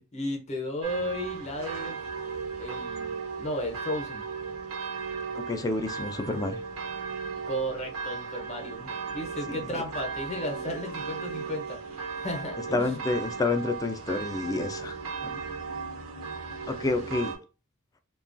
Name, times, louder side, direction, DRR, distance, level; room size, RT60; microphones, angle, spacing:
voice 1, 0.1-2.0 2.6-4.2 7.5-11.8 12.1-13.0 16.8-17.0, equal, 35° left, 2 dB, 0.7 m, -34 dB
sound 1, 0.8-17.4, right 5 dB, 85° right, 0.7 m, -36 dB
voice 2, 5.3-6.6 9.5-9.6 12.7-15.0 15.2-15.4 16.7-17.3, left 2 dB, 15° left, 7 dB, 0.3 m, -29 dB
2.8 x 2.3 x 2.5 m, 0.33 s
head